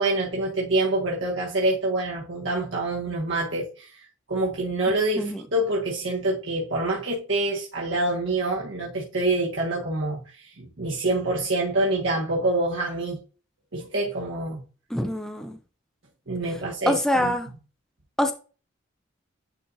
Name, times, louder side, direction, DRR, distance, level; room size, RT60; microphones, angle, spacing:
voice 1, 0.0-13.2 13.7-14.6 16.3-17.3, right 2 dB, 65° right, 1.6 m, -26 dB
voice 2, 14.9-15.6 16.9-17.5 18.2-18.3, left 1 dB, 5° left, 0.6 m, -24 dB
10.0 x 4.3 x 2.6 m
head